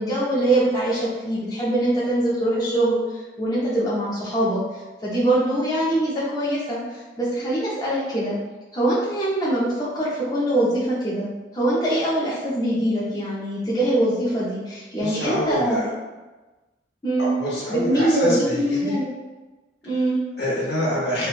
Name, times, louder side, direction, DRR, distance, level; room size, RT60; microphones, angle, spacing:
voice 1, 0.0-4.6 5.0-8.4 8.7-11.3 11.5-15.9 17.0-17.3 17.7-19.1 19.8-20.2, right 1 dB, 20° left, -8 dB, 0.5 m, -23 dB
voice 2, 15.0-15.9 17.2-18.9 20.4-21.3, equal, 70° left, -5 dB, 0.9 m, -26 dB
3.1 x 2.1 x 2.4 m, 1.2 s
head